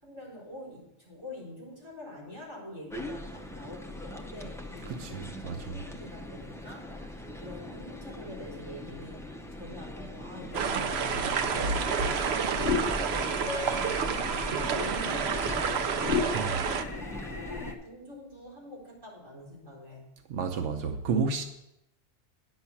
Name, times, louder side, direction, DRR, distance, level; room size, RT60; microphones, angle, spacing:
voice 1, 0.0-11.8 12.7-20.0, left 1 dB, 20° right, 4.4 m, -45 dB
sound 1, 2.9-17.7, left 1 dB, 5° left, 0.5 m, -41 dB
voice 2, 4.9-5.8 16.3-16.5 20.3-21.4, right 5 dB, 85° right, 1.1 m, -31 dB
sound 2, 10.5-17.8, left 3 dB, 40° left, 1.1 m, -35 dB
sound 3, 10.5-16.8, right 6 dB, 65° right, 0.9 m, -30 dB
9.6 x 6.2 x 7.1 m
omnidirectional pair, 1.2 m